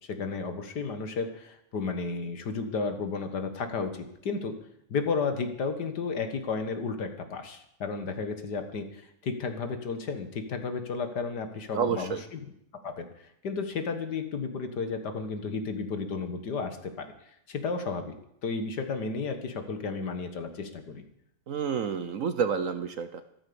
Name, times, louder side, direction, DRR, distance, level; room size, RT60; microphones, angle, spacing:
voice 1, 0.0-4.5 4.9-12.2 12.8-17.1 17.5-18.1 18.4-21.0, left 4 dB, 70° left, 7 dB, 2.1 m, -33 dB
voice 2, 11.7-12.2 21.5-23.2, right 6 dB, 55° right, 11 dB, 1.1 m, -29 dB
14.0 x 13.5 x 7.0 m, 0.75 s
omnidirectional pair, 1.9 m